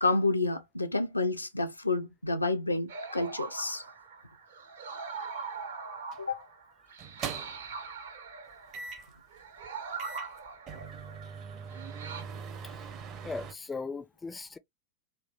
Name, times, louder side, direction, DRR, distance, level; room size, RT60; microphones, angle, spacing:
voice 1, 0.0-3.8 6.2-6.5, left 2 dB, 85° left, 0.4 m, -29 dB
sound 1, 2.9-12.2, right 5 dB, 65° right, 0.9 m, -42 dB
sound 2, 6.1-6.3 7.0-7.7 8.7-9.2 9.6-9.7 10.0-13.5, right 6 dB, 35° right, 0.7 m, -41 dB
voice 2, 13.2-14.6, left 4 dB, 15° left, 0.4 m, -38 dB
3.3 x 2.4 x 2.4 m
figure-of-eight pair, 90°, 0 cm